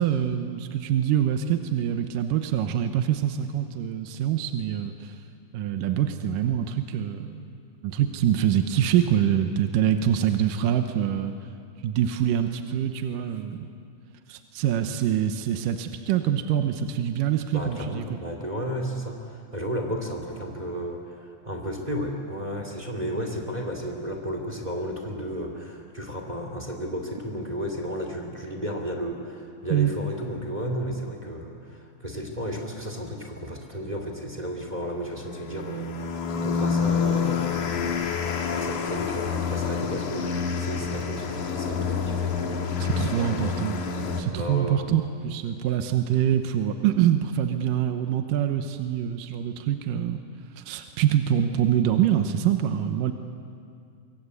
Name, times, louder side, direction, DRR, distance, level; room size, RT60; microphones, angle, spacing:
voice 1, 0.0-5.2 5.5-7.5 7.8-11.3 11.8-13.7 14.3-18.2 29.7-29.9 42.8-43.8 44.2-50.2 50.6-53.1, right 10 dB, 75° right, 7 dB, 2.5 m, -25 dB
voice 2, 17.5-38.0 38.3-43.5 44.3-44.8, equal, 15° right, 3 dB, 2.1 m, -33 dB
sound 1, 35.1-44.2, left 6 dB, 60° left, 3.0 m, -28 dB
24.5 x 24.5 x 8.3 m, 2.4 s
omnidirectional pair, 4.2 m